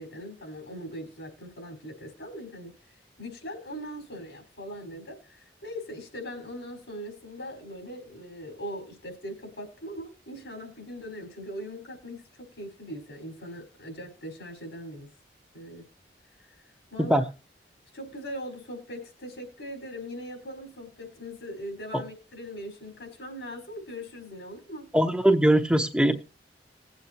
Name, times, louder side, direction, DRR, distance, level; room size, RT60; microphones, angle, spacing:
voice 1, 0.0-15.1 15.5-15.8 16.9-17.3 17.9-24.9, equal, 80° left, 3 dB, 5.0 m, -40 dB
voice 2, 24.9-26.1, right 1 dB, 5° right, 5 dB, 0.8 m, -21 dB
20.0 x 8.2 x 2.9 m, 0.32 s
head